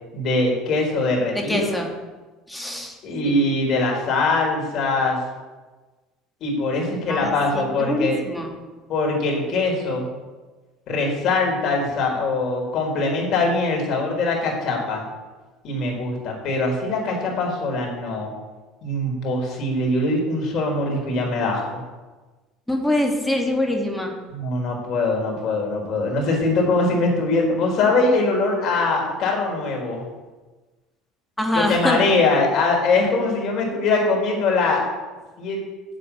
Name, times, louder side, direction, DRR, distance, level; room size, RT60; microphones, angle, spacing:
voice 1, 0.1-1.7 3.0-5.2 6.4-8.2 8.9-10.1 10.9-15.0 15.6-18.3 18.8-21.8 24.3-30.0 31.5-34.8 35.4-35.6, left 3 dB, 55° left, 0 dB, 4.4 m, -22 dB
voice 2, 1.3-1.9 2.5-3.0 3.2-3.3 7.1-8.5 22.7-24.1 31.4-32.0, left 1 dB, 5° left, 1 dB, 2.6 m, -24 dB
8.3 x 7.6 x 8.5 m, 1.3 s
hypercardioid pair, 80°, 0 cm